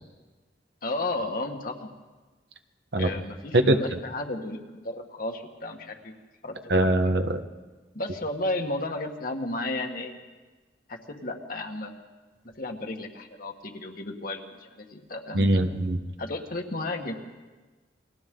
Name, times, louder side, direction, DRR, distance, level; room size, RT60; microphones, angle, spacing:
voice 1, 0.8-1.9 3.0-6.1 6.4-6.9 7.9-10.1 10.9-12.0 12.6-15.7 16.2-17.1, left 2 dB, 55° left, 3 dB, 1.8 m, -33 dB
voice 2, 6.7-7.4 15.3-16.0, right 1 dB, 70° right, 6 dB, 1.4 m, -22 dB
29.0 x 23.5 x 3.9 m, 1.3 s
head